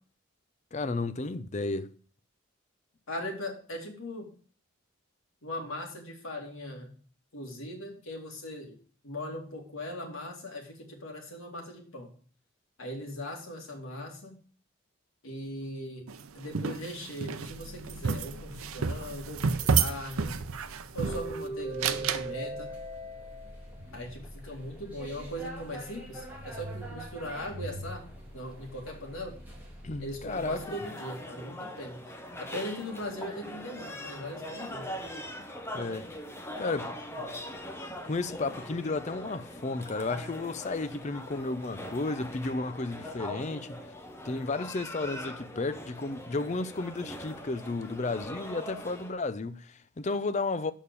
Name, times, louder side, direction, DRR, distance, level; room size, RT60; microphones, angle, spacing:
voice 1, 0.7-1.9 29.8-30.8 35.7-36.1 36.6-37.0 37.2-37.4 38.0-43.8 44.2-50.7, left 3 dB, 35° left, 0.5 m, -33 dB
voice 2, 3.1-4.3 5.4-6.9 7.3-8.8 9.0-12.1 12.8-14.3 15.2-16.1 16.3-20.4 20.9-22.7 23.9-28.0 28.3-29.3 30.0-32.0 32.4-34.9, left 1 dB, 80° left, 2.4 m, -39 dB
sound 1, 16.1-21.4 21.8-22.3, right 5 dB, 90° right, 0.6 m, -30 dB
sound 2, 17.4-30.7, right 1 dB, 10° right, 2.2 m, -42 dB
sound 3, 30.3-49.1, left 1 dB, 10° left, 0.8 m, -42 dB
6.7 x 5.5 x 6.8 m
head